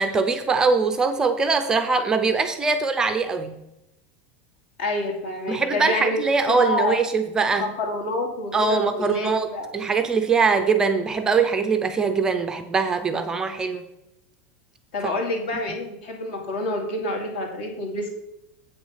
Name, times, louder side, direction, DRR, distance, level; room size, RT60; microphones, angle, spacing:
voice 1, 0.0-3.6 5.5-7.7 8.5-13.8 15.0-15.2, right 4 dB, 10° right, 8 dB, 0.4 m, -22 dB
voice 2, 4.8-6.2 6.5-7.0 7.6-9.7 14.9-18.1, left 2 dB, 65° left, 2 dB, 2.4 m, -27 dB
8.2 x 6.1 x 5.6 m, 0.86 s
supercardioid pair, 180°, 6 cm